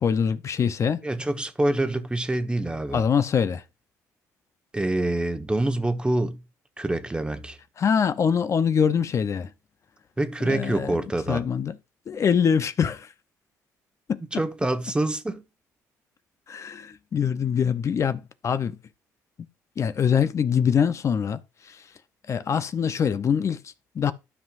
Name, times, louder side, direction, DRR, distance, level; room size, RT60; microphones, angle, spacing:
voice 1, 0.0-1.0 2.9-3.6 7.8-9.5 10.4-10.9 11.3-11.7 12.1-13.1 14.1-14.2 16.5-18.8 19.8-21.8 22.3-24.1, left 7 dB, 45° left, 0.7 m, -24 dB
voice 2, 1.0-3.0 4.7-6.4 6.8-7.6 10.2-11.4 14.3-15.4, right 1 dB, 15° right, 1.1 m, -26 dB
12.5 x 5.7 x 2.5 m
supercardioid pair, 70°, 7 cm